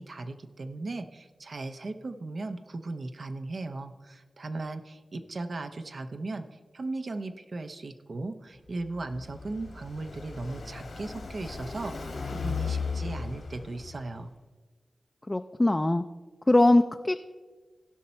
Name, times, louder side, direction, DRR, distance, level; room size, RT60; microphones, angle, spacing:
voice 1, 0.0-6.5 6.7-14.3, right 2 dB, 65° right, 8 dB, 0.7 m, -37 dB
Car passing by, 8.7-14.2, left 5 dB, 85° left, 1.5 m, -36 dB
voice 2, 15.3-16.0 16.5-17.2, left 2 dB, 25° left, 7 dB, 0.4 m, -21 dB
16.5 x 5.7 x 4.3 m, 1.3 s
cardioid pair, 55°, 0 cm